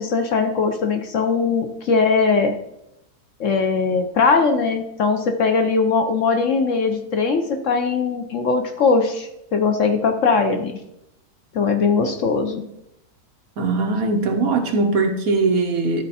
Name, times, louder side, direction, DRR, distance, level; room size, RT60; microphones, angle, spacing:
voice 1, 0.0-2.5 3.4-10.7 11.5-12.6, left 4 dB, 60° left, 6 dB, 0.9 m, -20 dB
voice 2, 13.6-16.0, right 3 dB, 65° right, 4 dB, 1.4 m, -20 dB
12.5 x 4.3 x 4.2 m, 0.82 s
omnidirectional pair, 1.7 m